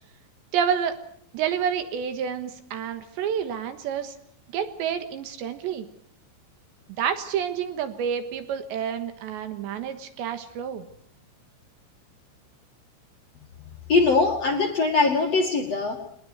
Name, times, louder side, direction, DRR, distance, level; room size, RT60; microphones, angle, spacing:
voice 1, 0.5-1.0 1.3-4.1 4.5-5.9 7.0-10.9, right 8 dB, 70° right, 9 dB, 3.5 m, -29 dB
voice 2, 13.9-16.1, left 3 dB, 45° left, 1 dB, 2.4 m, -22 dB
22.0 x 20.0 x 8.1 m, 0.67 s
omnidirectional pair, 5.6 m